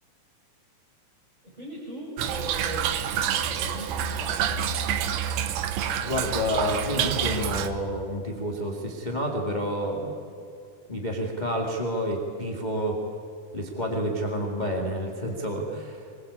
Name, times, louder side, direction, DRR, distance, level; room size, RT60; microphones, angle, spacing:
voice 1, 1.4-2.9 3.3-4.6, right 1 dB, 10° right, -6 dB, 5.0 m, -39 dB
Toilet flush / Trickle dribble, 2.2-7.7, right 8 dB, 85° right, 3.1 m, -28 dB
voice 2, 6.1-10.1 10.9-13.0 13.5-16.1, equal, 15° left, 0 dB, 1.8 m, -29 dB
23.5 x 21.5 x 8.5 m, 2.5 s
omnidirectional pair, 4.3 m